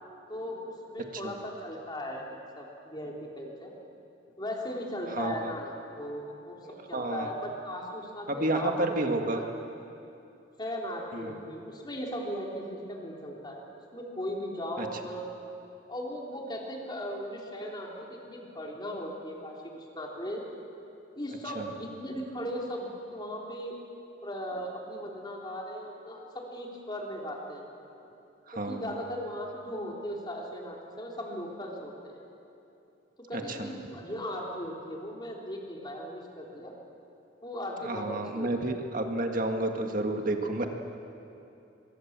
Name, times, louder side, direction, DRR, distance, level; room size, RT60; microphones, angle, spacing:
voice 1, 0.3-3.7 4.4-6.6 6.9-9.5 10.6-13.6 13.9-15.3 15.9-20.4 21.2-23.7 24.2-27.7 28.5-32.2 33.3-36.7 37.4-38.5, equal, 25° left, -1 dB, 3.6 m, -37 dB
voice 2, 5.1-5.5 6.6-7.3 8.3-9.4 11.1-11.4 14.8-14.9 21.6-21.7 28.5-28.9 33.3-33.7 37.8-40.7, right 2 dB, 45° right, 4 dB, 1.9 m, -31 dB
24.0 x 23.5 x 7.5 m, 2.8 s
head